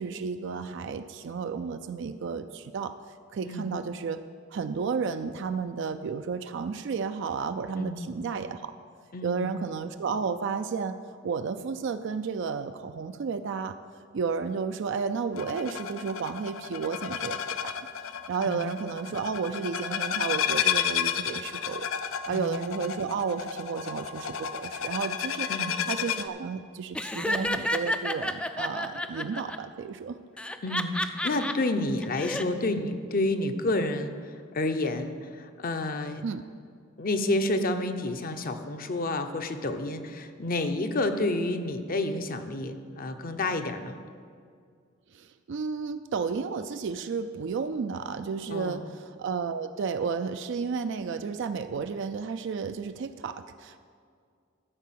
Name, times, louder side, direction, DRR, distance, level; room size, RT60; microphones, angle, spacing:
voice 1, 0.0-2.9 3.3-4.2 4.5-8.7 9.2-11.0 11.2-13.8 14.1-17.8 18.0-21.9 22.3-25.5 25.9-30.2 36.2-36.4 45.1-53.8, right 5 dB, 65° right, 9 dB, 0.4 m, -32 dB
voice 2, 9.1-9.5 18.4-18.7 22.3-22.6 25.5-25.8 30.6-34.2 34.5-36.2 37.0-44.0 48.5-48.8, left 2 dB, 45° left, 8 dB, 0.7 m, -29 dB
sound 1, 15.4-26.3, left 8 dB, 90° left, 0.5 m, -32 dB
Laughter, 26.9-29.6 30.4-31.5 32.0-32.4, left 1 dB, 5° left, 0.3 m, -30 dB
13.5 x 4.6 x 7.5 m, 2.2 s
head